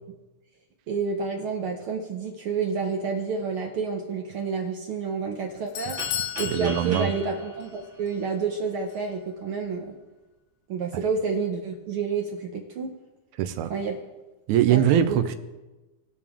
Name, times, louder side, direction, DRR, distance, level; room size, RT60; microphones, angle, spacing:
voice 1, 0.9-6.0 6.4-10.0 10.7-12.9 13.7-14.0 14.7-14.8 15.1-15.2, right 5 dB, 70° right, 2 dB, 1.3 m, -29 dB
Doorbell, 5.3-7.8 8.1-8.2 8.9-9.0, left 11 dB, 75° left, 1.7 m, -34 dB
sound 1, 6.0-8.7, right 2 dB, 45° right, 2.3 m, -39 dB
voice 2, 6.5-7.1 13.4-13.7 14.5-15.4, right 10 dB, 85° right, 10 dB, 2.1 m, -22 dB
20.0 x 6.9 x 3.6 m, 1.1 s
omnidirectional pair, 3.4 m